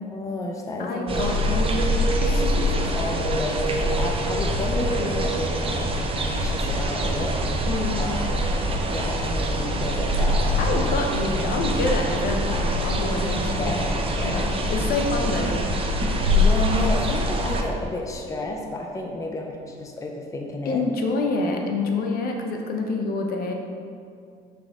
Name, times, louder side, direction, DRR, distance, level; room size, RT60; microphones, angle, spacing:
voice 1, 0.1-1.2 1.5-2.0 2.9-5.9 6.2-7.7 8.0-8.3 8.9-10.9 13.6-14.6 16.4-20.8, left 2 dB, 20° left, 1 dB, 0.6 m, -31 dB
voice 2, 0.8-2.9 7.7-8.1 10.6-13.8 14.2-15.7 20.7-23.5, left 2 dB, 60° left, 2 dB, 0.9 m, -27 dB
sound 1, 1.1-17.6, equal, 35° right, 0.7 m, -24 dB
6.1 x 5.1 x 3.6 m, 2.3 s
cardioid pair, 110°, 17 cm